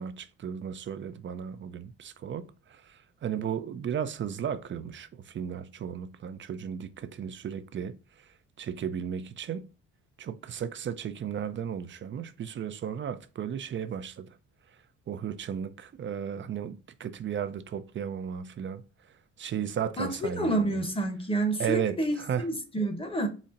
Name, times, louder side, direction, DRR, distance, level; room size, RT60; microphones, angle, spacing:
voice 1, 0.0-9.7 10.2-14.4 14.7-14.8 15.1-20.9 21.6-22.5, right 8 dB, 40° right, 0.4 m, -35 dB
voice 2, 20.0-23.3, right 1 dB, 20° left, 0.8 m, -29 dB
4.0 x 2.1 x 3.7 m
cardioid pair, 90°, 30 cm